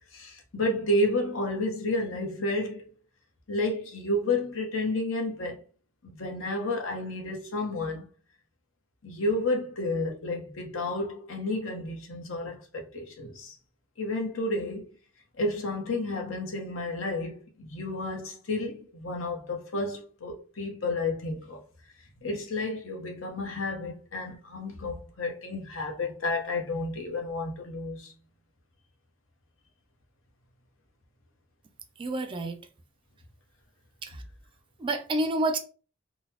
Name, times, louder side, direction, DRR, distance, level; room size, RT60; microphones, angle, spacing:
voice 1, 0.1-2.9 3.5-5.6 6.0-8.1 9.0-13.6 14.0-14.9 15.4-21.6 22.2-28.1, left 2 dB, 80° left, 0.9 m, -31 dB
voice 2, 32.0-32.6 34.0-34.2 34.8-35.6, right 2 dB, 25° right, 0.3 m, -28 dB
3.9 x 2.2 x 2.8 m
head